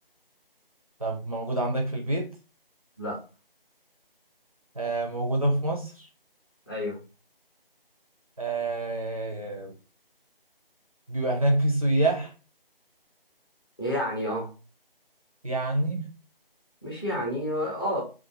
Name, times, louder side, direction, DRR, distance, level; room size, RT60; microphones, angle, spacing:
voice 1, 1.0-2.3 4.8-6.1 8.4-9.7 11.1-12.3 15.4-16.1, right 2 dB, 40° right, -1 dB, 0.5 m, -27 dB
voice 2, 6.7-7.0 13.8-14.5 16.8-18.0, equal, 25° left, -4 dB, 0.7 m, -29 dB
2.4 x 2.4 x 2.8 m, 0.32 s
figure-of-eight pair, 160°, 29 cm